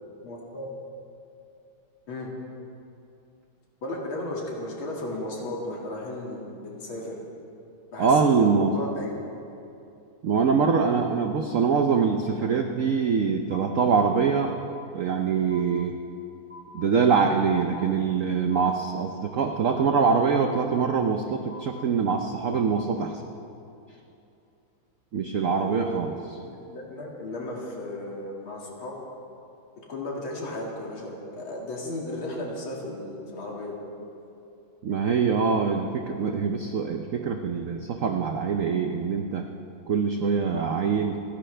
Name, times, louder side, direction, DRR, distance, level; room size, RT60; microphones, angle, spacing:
voice 1, 0.2-0.7 2.1-2.3 3.8-7.1 7.9-9.2 25.6-26.0 26.4-28.9 29.9-33.7 36.5-36.6, left 1 dB, 80° left, -3 dB, 3.1 m, -35 dB
voice 2, 8.0-8.7 10.2-14.5 14.9-16.0 16.7-23.2 25.1-26.1 34.8-39.4 39.9-41.2, right 5 dB, 70° right, 4 dB, 0.7 m, -24 dB
sound 1, 13.5-14.2 14.5-15.2 15.5-16.2 16.5-17.2 17.5-18.2 18.5-19.2 19.5-20.2 20.5-21.2 21.5-22.2 22.5-23.2, left 2 dB, 15° left, 2.9 m, -48 dB
30.0 x 10.5 x 3.4 m, 2.7 s
omnidirectional pair, 2.2 m